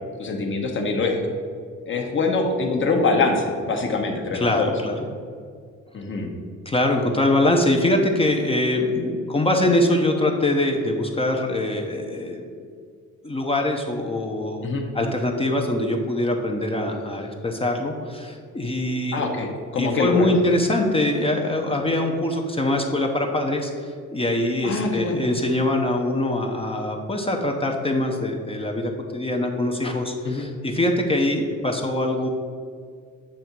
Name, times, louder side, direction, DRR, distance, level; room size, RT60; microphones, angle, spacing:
voice 1, 0.2-1.3 1.9-4.7 5.9-6.3 14.6-14.8 19.1-20.3 24.6-25.3 30.2-30.5, left 3 dB, 40° left, 2 dB, 1.1 m, -24 dB
voice 2, 4.3-5.1 6.7-12.4 13.2-14.7 14.9-19.2 19.8-32.3, left 1 dB, 20° left, 1 dB, 0.7 m, -23 dB
7.6 x 2.8 x 5.9 m, 2.1 s
cardioid pair, 90°, 30 cm